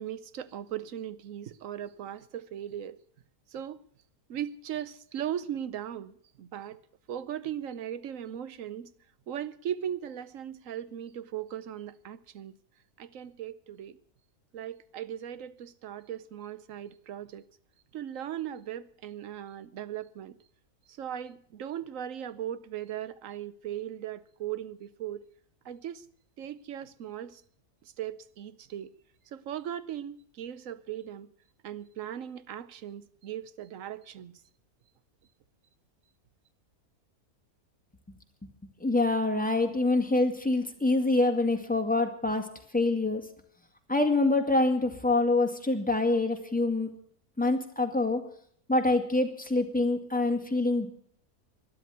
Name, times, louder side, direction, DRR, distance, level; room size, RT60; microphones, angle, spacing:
voice 1, 0.0-3.0 3.5-3.8 4.3-6.8 7.1-8.9 9.3-12.5 13.0-14.0 14.5-17.4 17.9-20.4 21.0-25.2 25.6-26.0 26.4-27.4 28.0-28.9 29.3-31.3 31.6-34.4, right 10 dB, 65° right, 1.1 m, -38 dB
voice 2, 38.8-42.5 42.7-43.2 43.9-46.9 47.4-48.2 48.7-50.9, left 2 dB, 5° left, 1.8 m, -25 dB
12.5 x 11.0 x 9.3 m
omnidirectional pair, 1.6 m